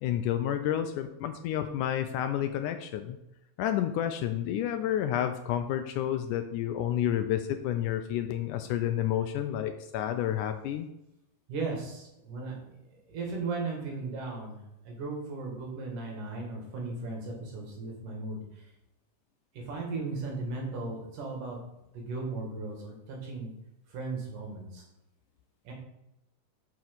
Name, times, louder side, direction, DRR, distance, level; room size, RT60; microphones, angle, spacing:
voice 1, 0.0-3.2 3.6-10.9, left 11 dB, 80° left, 8 dB, 1.9 m, -30 dB
voice 2, 11.5-12.7 13.1-14.6 14.9-18.4 19.6-21.6 21.9-23.5 23.9-24.8 25.7-25.8, right 3 dB, 70° right, 0 dB, 3.5 m, -36 dB
7.1 x 6.2 x 6.0 m, 0.88 s
omnidirectional pair, 3.9 m